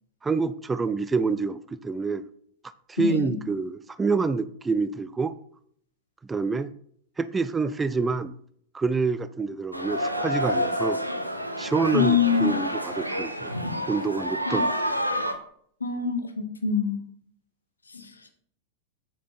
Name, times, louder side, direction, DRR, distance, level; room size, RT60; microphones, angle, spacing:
voice 1, 0.2-2.2 2.9-5.3 6.3-6.7 7.2-8.3 8.7-11.0 11.6-13.6 13.9-14.7, right 4 dB, 15° right, 14 dB, 0.4 m, -27 dB
sound 1, 9.7-15.3, equal, 90° right, 1.0 m, -28 dB
voice 2, 11.9-12.5 14.5-14.6 15.8-17.0 17.9-18.1, left 6 dB, 75° left, 8 dB, 1.2 m, -24 dB
8.1 x 7.2 x 4.3 m, 0.63 s
figure-of-eight pair, 90°, 0 cm